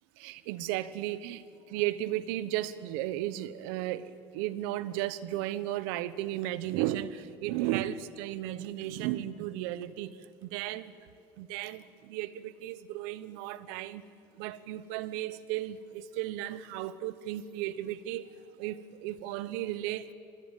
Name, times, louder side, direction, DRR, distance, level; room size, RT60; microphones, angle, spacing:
voice 1, 0.2-1.4 1.7-10.9 11.4-14.0 14.3-18.3 18.6-20.1, right 14 dB, 85° right, 1.0 m, -34 dB
25.5 x 19.5 x 9.0 m
supercardioid pair, 90°, 11 cm